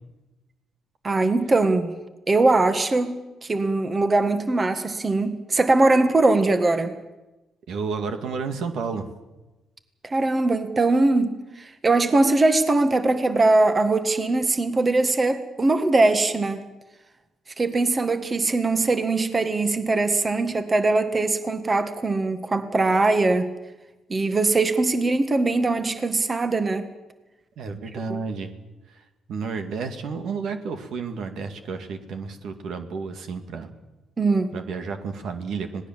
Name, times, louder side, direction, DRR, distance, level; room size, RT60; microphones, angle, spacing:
voice 1, 1.0-1.9 2.3-6.9 10.0-16.6 17.6-23.5 24.1-26.8 28.1-28.2 34.2-34.5, right 2 dB, 30° right, 8 dB, 1.7 m, -21 dB
voice 2, 7.7-9.1 27.6-28.5 28.9-33.7 34.5-35.9, right 5 dB, 75° right, 7 dB, 2.2 m, -31 dB
26.0 x 18.5 x 7.4 m, 1.1 s
cardioid pair, 90°, 0 cm